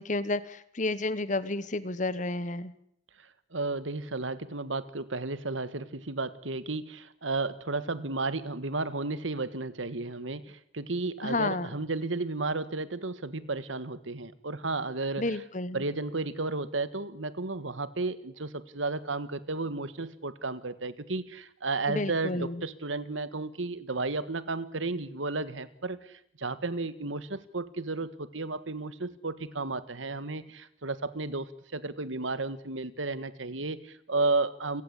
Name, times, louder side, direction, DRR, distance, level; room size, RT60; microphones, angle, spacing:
voice 1, 0.0-2.7 11.2-11.7 15.2-15.8 21.9-22.6, left 2 dB, 40° left, 15 dB, 1.3 m, -31 dB
voice 2, 3.2-15.4 15.7-34.8, right 3 dB, 90° right, 14 dB, 1.7 m, -33 dB
29.0 x 17.5 x 8.3 m, 0.71 s
head